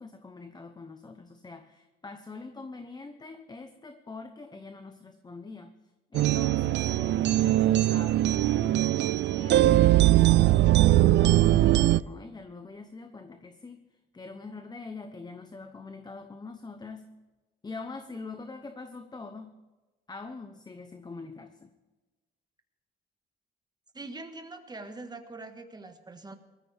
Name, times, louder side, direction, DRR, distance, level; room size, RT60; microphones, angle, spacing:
voice 1, 0.0-5.8 6.1-9.0 9.3-17.1 17.6-19.6 20.1-21.7, left 3 dB, 20° left, 8 dB, 0.9 m, -44 dB
sound 1, 6.1-12.0, right 14 dB, 65° right, 0.4 m, -21 dB
voice 2, 23.9-26.4, right 2 dB, 20° right, 6 dB, 1.6 m, -43 dB
19.5 x 14.0 x 3.5 m, 1.2 s
cardioid pair, 90°, 20 cm